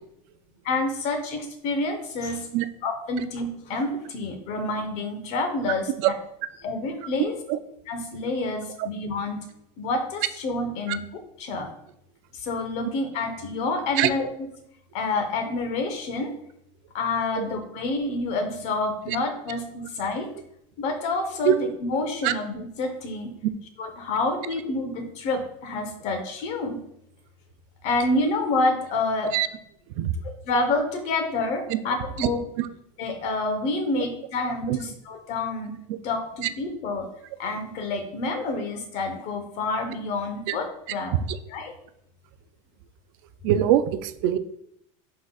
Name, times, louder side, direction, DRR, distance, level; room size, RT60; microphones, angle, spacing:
voice 1, 0.6-2.5 2.8-6.1 6.6-7.4 7.9-9.5 9.8-11.0 11.4-11.7 12.3-14.3 14.9-16.3 16.9-20.3 20.8-23.3 23.8-26.8 27.8-29.3 30.5-32.4 33.0-37.1 37.4-41.2 41.5-41.7, left 2 dB, 45° left, 6 dB, 1.1 m, -28 dB
voice 2, 43.4-44.4, right 12 dB, 65° right, 11 dB, 0.5 m, -22 dB
11.0 x 4.0 x 2.4 m, 0.75 s
cardioid pair, 170°, 15 cm